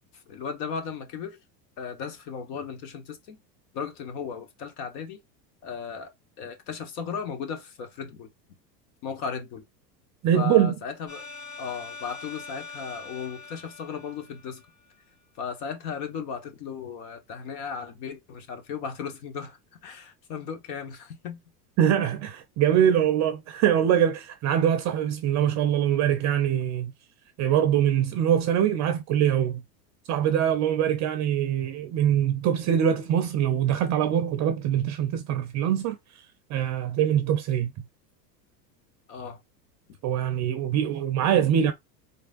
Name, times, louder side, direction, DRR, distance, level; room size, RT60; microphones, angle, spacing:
voice 1, 0.1-1.4 1.8-3.4 3.7-5.2 5.6-6.1 6.4-8.3 9.0-9.6 10.3-11.3 11.6-14.6 15.4-21.4 39.1-39.4, left 6 dB, 60° left, 1.4 m, -36 dB
voice 2, 10.2-10.7 21.8-26.9 27.4-29.6 30.1-36.2 36.5-37.7 40.0-41.7, right 10 dB, 35° right, 0.5 m, -23 dB
sound 1, 11.1-15.0, left 4 dB, 15° left, 1.7 m, -43 dB
4.2 x 3.3 x 2.5 m
hypercardioid pair, 100°, 50 cm